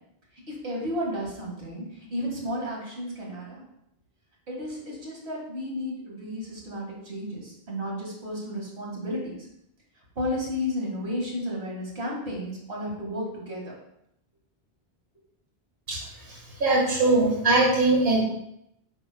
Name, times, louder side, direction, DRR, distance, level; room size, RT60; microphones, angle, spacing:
voice 1, 0.5-3.6 4.5-9.5 10.2-13.7, left 1 dB, 90° right, -3 dB, 2.3 m, -33 dB
voice 2, 16.6-18.2, right 2 dB, 65° right, -4 dB, 1.8 m, -21 dB
9.2 x 5.9 x 2.3 m, 0.79 s
omnidirectional pair, 1.1 m